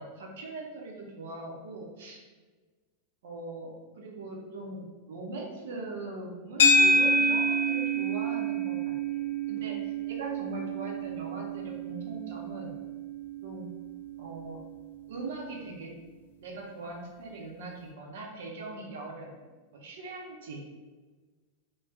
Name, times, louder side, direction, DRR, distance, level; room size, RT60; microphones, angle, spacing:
voice 1, 0.0-2.2 3.2-4.8 5.1-9.2 9.5-12.7 13.4-13.7 14.2-14.6 15.1-15.9 16.4-19.4 19.7-20.7, right 2 dB, 60° right, -1 dB, 0.6 m, -41 dB
sound 1, 6.6-15.0, equal, 60° left, 0.3 m, -28 dB
2.5 x 2.2 x 3.4 m, 1.4 s
figure-of-eight pair, 90°, 0 cm